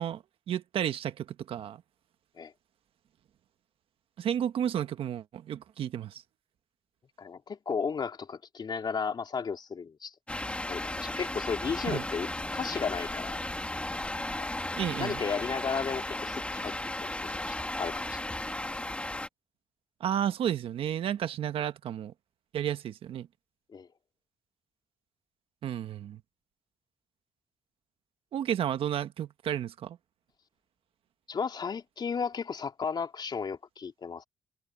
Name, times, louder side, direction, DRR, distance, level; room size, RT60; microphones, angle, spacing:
voice 1, 0.0-1.8 4.2-6.2 11.9-12.0 14.8-15.2 20.0-22.1 22.5-23.3 25.6-26.2 28.3-30.0, right 10 dB, 75° right, 1.4 m, -32 dB
voice 2, 7.2-10.1 10.7-13.4 14.4-14.5 15.0-16.7 17.0-17.1 17.5-18.2 23.7-23.9 31.3-34.2, left 6 dB, 50° left, 3.3 m, -34 dB
sound 1, 10.3-19.3, left 1 dB, 10° left, 2.5 m, -35 dB
cardioid pair, 75°, 10 cm